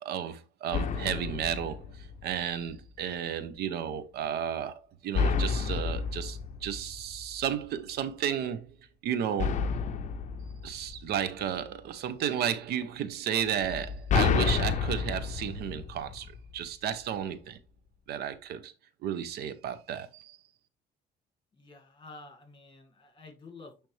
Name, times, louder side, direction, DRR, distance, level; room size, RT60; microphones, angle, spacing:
voice 1, 0.0-8.7 9.0-9.7 10.6-17.6 18.1-18.7 19.0-20.4, right 9 dB, 70° right, 0.7 m, -33 dB
sound 1, 0.7-2.6 5.1-7.6 9.4-11.7 13.6-16.7, left 6 dB, 45° left, 0.6 m, -30 dB
voice 2, 21.5-23.9, left 3 dB, 30° left, 2.0 m, -50 dB
9.0 x 3.4 x 3.2 m
cardioid pair, 110°, 17 cm